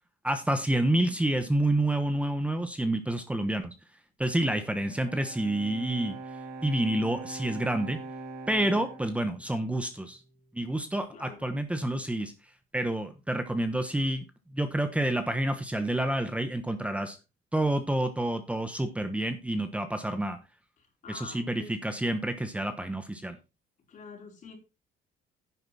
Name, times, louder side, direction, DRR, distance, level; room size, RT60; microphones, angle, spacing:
voice 1, 0.2-3.7 4.2-6.2 6.6-8.0 8.5-10.2 10.5-12.3 12.7-14.2 14.5-17.2 17.5-20.4 21.1-23.4, right 1 dB, 5° right, 8 dB, 1.1 m, -28 dB
Bowed string instrument, 4.7-10.1, right 3 dB, 85° right, 4.3 m, -43 dB
voice 2, 11.1-11.5 20.8-22.0 23.9-24.5, left 4 dB, 50° left, 3 dB, 4.3 m, -47 dB
10.5 x 7.8 x 4.2 m, 0.28 s
cardioid pair, 110°, 17 cm